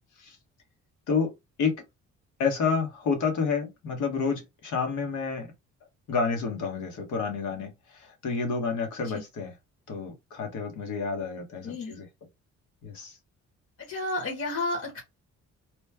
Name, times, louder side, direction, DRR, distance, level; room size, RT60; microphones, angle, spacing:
voice 1, 2.4-5.5 6.1-9.5 9.9-12.1 12.8-13.2, left 5 dB, 80° left, 1.3 m, -29 dB
voice 2, 13.8-15.0, left 2 dB, 55° left, 1.2 m, -31 dB
3.1 x 2.2 x 3.3 m
cardioid pair, 90°, 30 cm